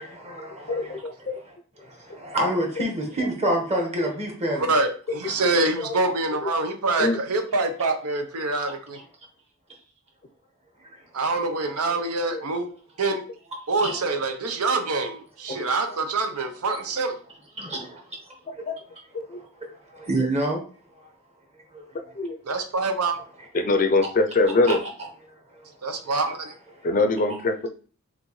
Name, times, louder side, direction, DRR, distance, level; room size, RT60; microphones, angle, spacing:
voice 1, 0.0-4.7 5.2-5.5 8.6-8.7 10.8-11.0 13.8-14.0 15.5-15.6 16.7-16.8 17.6-18.6 18.9-19.0 19.3-20.6 20.9-21.1 21.7-21.9 23.4-23.8 24.6-24.9 25.3-25.7 26.0-26.1 26.8-26.9, right 1 dB, 30° right, 1.3 m, -30 dB
voice 2, 0.7-1.4 5.2-5.3 5.8-6.0 6.4-6.6 7.0-7.2 12.3-12.4 18.7-18.8 19.3-19.4 21.9-22.4 23.5-24.8 26.8-27.7, left 2 dB, 40° left, 0.4 m, -23 dB
voice 3, 4.6-9.0 11.1-12.7 13.0-13.2 13.7-17.1 22.5-23.2 25.8-26.5, right 3 dB, 85° right, 0.7 m, -25 dB
6.1 x 2.5 x 3.1 m
head